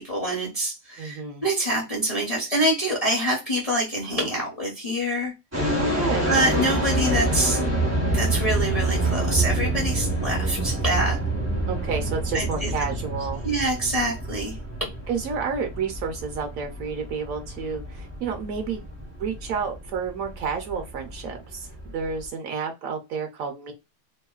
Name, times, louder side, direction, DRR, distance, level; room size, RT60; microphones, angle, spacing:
voice 1, 0.0-5.3 6.3-7.6 8.1-11.2 12.3-12.7 13.4-14.6, right 1 dB, 35° left, 0.6 m, -25 dB
voice 2, 1.0-1.5 5.8-6.3 11.7-13.4 15.1-18.9 19.2-23.7, right 5 dB, 70° right, 0.9 m, -30 dB
sound 1, 5.5-22.3, right 2 dB, 15° right, 0.5 m, -27 dB
2.9 x 2.1 x 2.3 m
omnidirectional pair, 1.6 m